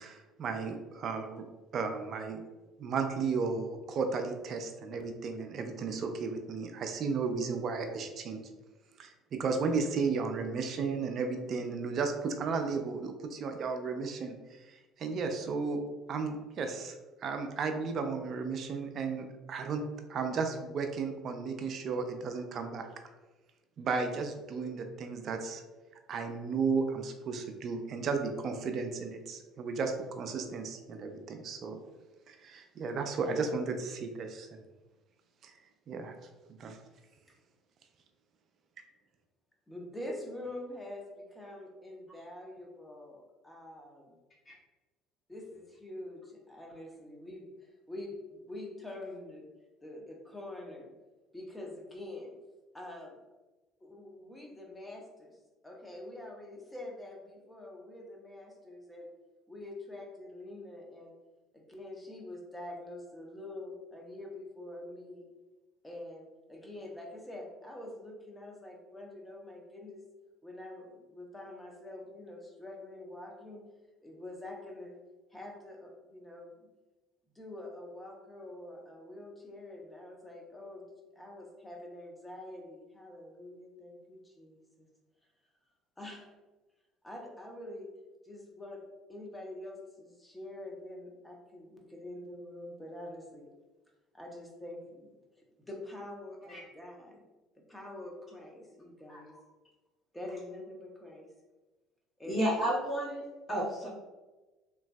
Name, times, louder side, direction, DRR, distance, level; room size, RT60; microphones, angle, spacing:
voice 1, 0.0-1.4 1.7-2.4 2.8-8.4 9.0-15.8 16.1-19.8 20.1-22.9 23.8-25.6 26.1-31.8 32.3-34.5 35.4-35.5 35.9-36.1 36.6-36.8, right 4 dB, 50° right, 5 dB, 0.4 m, -34 dB
voice 2, 39.7-44.2 45.3-49.5 49.8-50.9 51.3-52.4 52.7-53.1 53.8-59.1 59.5-61.1 61.5-65.3 65.8-70.0 70.4-73.6 74.0-75.0 75.3-76.5 77.3-80.8 81.1-84.6 86.0-86.3 87.0-87.9 88.2-88.8 89.1-93.5 94.1-95.1 95.7-97.3 97.6-99.4 100.1-101.3 102.2-102.6, left 1 dB, 10° left, 0 dB, 0.8 m, -45 dB
voice 3, 102.2-103.9, right 1 dB, 35° left, -8 dB, 1.1 m, -32 dB
3.1 x 2.6 x 2.3 m, 1.2 s
supercardioid pair, 75°, 0 cm